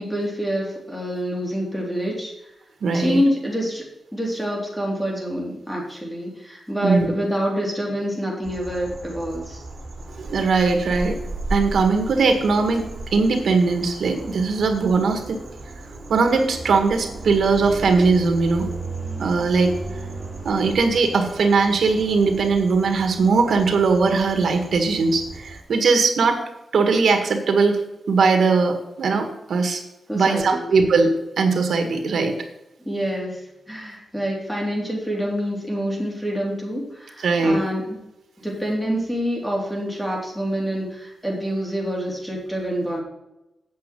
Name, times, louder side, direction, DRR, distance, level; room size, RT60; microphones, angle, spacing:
voice 1, 0.0-2.3 2.9-3.8 4.1-9.6 30.1-30.7 32.8-33.4 33.7-37.8 38.4-43.0, equal, ahead, -2 dB, 3.4 m, -26 dB
voice 2, 2.8-3.2 6.8-7.1 10.2-11.2 11.5-15.4 16.1-18.7 19.2-19.7 20.4-26.4 26.7-27.8 28.1-29.8 30.1-32.3 37.2-37.6, right 4 dB, 80° right, 5 dB, 1.7 m, -20 dB
sound 1, 8.4-25.6, right 2 dB, 45° right, 3.4 m, -35 dB
8.5 x 6.3 x 7.6 m, 0.91 s
wide cardioid pair, 110°, 0 cm